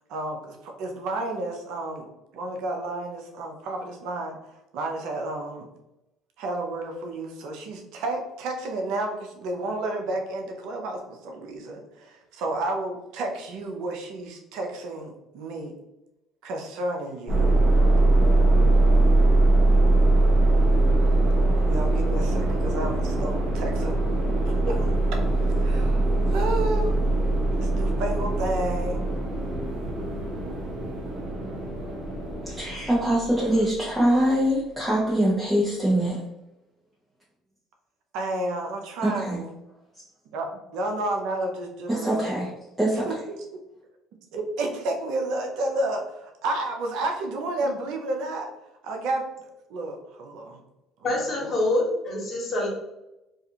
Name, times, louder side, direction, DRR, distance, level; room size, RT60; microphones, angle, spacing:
voice 1, 0.1-2.1 2.3-4.4 4.7-5.7 6.4-15.7 16.4-17.5 21.6-24.0 24.7-25.2 25.6-26.0 26.3-27.0 27.6-29.0 33.3-33.7 38.1-39.5 40.3-42.4 42.9-43.2 44.3-48.5 48.8-49.2 49.7-50.6 51.0-51.6, right 2 dB, 75° right, 3 dB, 0.5 m, -31 dB
sound 1, 17.3-33.7, right 2 dB, 50° right, 0.9 m, -22 dB
voice 2, 32.4-36.2 39.0-39.4 41.9-42.5 42.8-43.2, right 1 dB, 15° right, -6 dB, 0.7 m, -23 dB
voice 3, 51.0-52.7, left 1 dB, 45° left, -2 dB, 1.2 m, -25 dB
2.4 x 2.3 x 2.8 m, 0.92 s
supercardioid pair, 75°, 0 cm